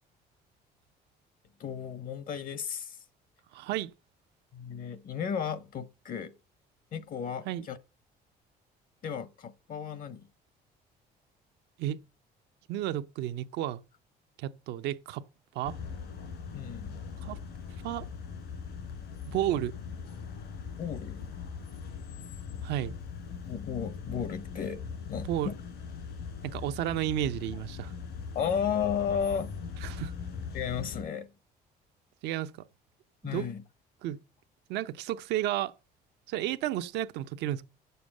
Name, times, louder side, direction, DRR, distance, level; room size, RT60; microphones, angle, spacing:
voice 1, 1.6-3.0 4.5-6.3 6.9-7.8 9.0-10.3 16.5-17.0 20.8-21.3 23.5-24.8 25.1-25.5 28.3-29.6 30.5-31.3 33.2-33.6, left 7 dB, 55° left, 0.9 m, -34 dB
voice 2, 3.5-3.9 7.4-7.7 11.8-12.0 12.7-13.8 14.4-15.2 15.5-15.8 17.2-17.4 17.8-18.1 19.3-19.7 22.6-23.0 25.3-25.5 26.4-27.9 29.8-30.1 32.2-32.5 33.3-33.5 34.0-34.2 34.7-35.7 36.3-37.6, right 12 dB, 85° right, 0.7 m, -32 dB
sound 1, 15.6-31.0, left 6 dB, 80° left, 3.0 m, -40 dB
9.5 x 6.9 x 7.5 m
cardioid pair, 110°, 17 cm